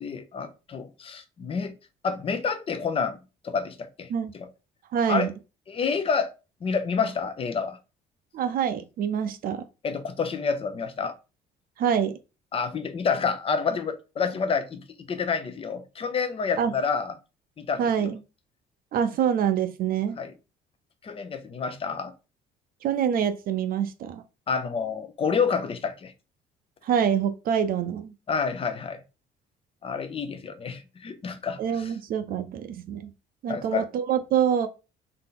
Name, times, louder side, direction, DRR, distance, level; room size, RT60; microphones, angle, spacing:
voice 1, 0.0-1.7 2.0-4.1 4.3-4.5 5.1-5.3 5.7-6.3 6.6-7.8 9.8-11.1 12.5-17.1 17.6-18.1 20.2-20.3 21.0-22.1 24.5-26.1 28.3-29.0 29.8-31.9 33.5-33.8, left 5 dB, 35° left, 0.7 m, -28 dB
voice 2, 4.9-5.3 8.3-9.7 11.8-12.1 16.6-16.7 17.8-18.2 18.9-20.2 22.8-24.2 26.8-28.1 31.6-33.1 33.4-34.7, right 8 dB, 60° right, 0.6 m, -25 dB
3.8 x 2.8 x 3.8 m
cardioid pair, 110°, 17 cm